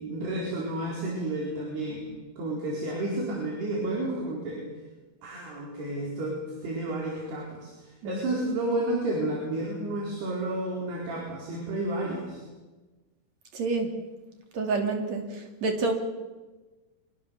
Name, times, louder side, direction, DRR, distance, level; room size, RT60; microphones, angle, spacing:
voice 1, 0.0-2.0 2.4-4.6 5.2-12.4, right 1 dB, 70° right, -2 dB, 6.4 m, -31 dB
voice 2, 13.5-13.9 14.5-15.9, right 3 dB, 45° right, 4 dB, 3.7 m, -28 dB
25.5 x 22.0 x 7.1 m, 1.2 s
omnidirectional pair, 4.9 m